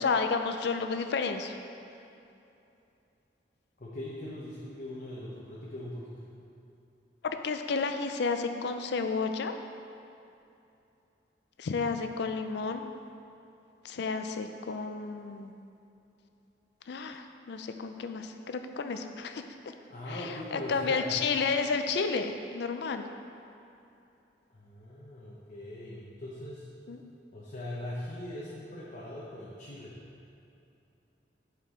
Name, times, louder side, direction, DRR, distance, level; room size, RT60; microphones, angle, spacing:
voice 1, 0.0-1.6 7.2-9.5 11.6-12.9 13.8-15.5 16.9-19.4 20.1-23.0 26.9-27.0, left 4 dB, 70° left, 7 dB, 0.4 m, -31 dB
voice 2, 3.8-6.0 19.9-21.1 24.5-26.7 27.3-29.9, left 1 dB, 50° left, -6 dB, 0.8 m, -40 dB
8.4 x 4.7 x 3.6 m, 2.8 s
head